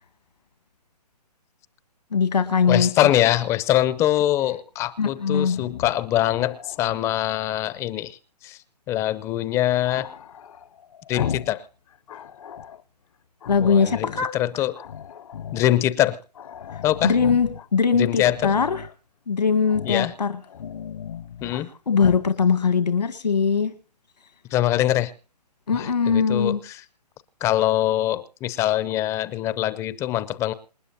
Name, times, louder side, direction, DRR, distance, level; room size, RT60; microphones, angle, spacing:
voice 1, 2.1-3.1 5.0-5.6 13.5-14.3 17.0-18.8 19.3-20.4 21.9-23.7 25.7-26.6, left 6 dB, 85° left, 9 dB, 2.1 m, -21 dB
voice 2, 2.7-8.2 8.4-8.6 8.9-10.1 11.1-11.7 13.6-14.7 15.5-16.2 16.8-17.1 17.9-18.5 19.8-20.1 21.4-21.7 24.5-25.1 25.7-26.8 27.4-30.5, left 13 dB, 15° left, 17 dB, 0.6 m, -23 dB
Growling, 5.5-7.5 9.8-11.6 11.9-12.8 13.4-14.3 14.7-15.7 16.0-16.1 16.3-17.7 18.1-18.9 19.6-20.1 20.4-21.6 22.0-22.3, left 8 dB, 55° left, 0.8 m, -36 dB
27.5 x 9.8 x 2.7 m, 0.36 s
hypercardioid pair, 145°, 21 cm